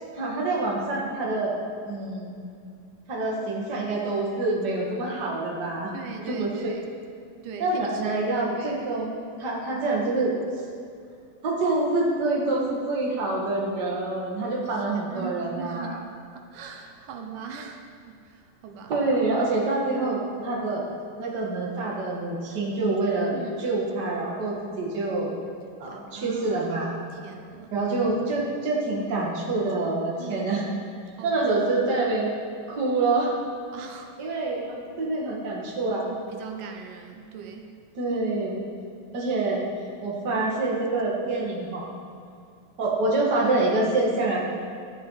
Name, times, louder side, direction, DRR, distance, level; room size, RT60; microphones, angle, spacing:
voice 1, 0.1-1.5 1.8-2.3 3.1-5.9 6.3-6.7 7.6-10.3 11.4-16.0 18.9-20.8 21.2-25.4 25.8-27.0 27.7-30.7 31.2-32.3 32.7-33.3 34.2-36.1 37.9-38.6 39.1-39.6 40.0-41.9 42.8-44.4, right 2 dB, 35° right, -3 dB, 2.2 m, -26 dB
voice 2, 5.9-6.9 7.4-8.2 8.5-8.8 14.9-16.0 16.3-18.9 23.3-23.6 25.9-26.6 27.2-27.8 30.2-30.5 31.2-31.4 33.7-34.1 36.3-37.7, right 6 dB, 80° right, 3 dB, 2.5 m, -39 dB
13.0 x 12.5 x 4.1 m, 2.3 s
omnidirectional pair, 3.7 m